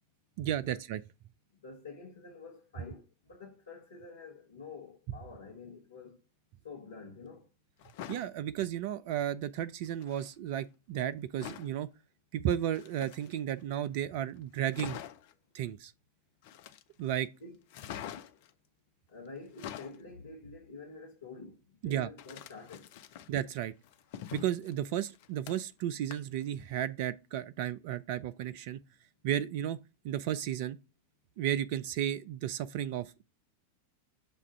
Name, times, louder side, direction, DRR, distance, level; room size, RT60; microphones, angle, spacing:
voice 1, 0.4-1.0 8.1-11.9 12.3-15.0 15.5-15.9 17.0-17.3 21.8-22.1 23.3-23.7 24.3-28.8 29.2-29.8 30.0-30.8 31.4-33.2, right 11 dB, 45° right, 0.3 m, -33 dB
voice 2, 1.6-6.2 6.6-7.5 17.4-17.6 19.1-22.9, left 4 dB, 65° left, 1.2 m, -48 dB
sound 1, 7.8-8.3 9.8-10.3 11.4-11.7 12.6-13.6 14.0-14.1 14.4-14.5 14.7-15.3 16.4-17.1 17.7-18.5 19.4-20.0 22.2-23.4 23.8-25.8 26.1-26.4 26.8-26.9, left 10 dB, 50° left, 0.5 m, -45 dB
6.9 x 2.4 x 5.5 m
figure-of-eight pair, 90°, 0 cm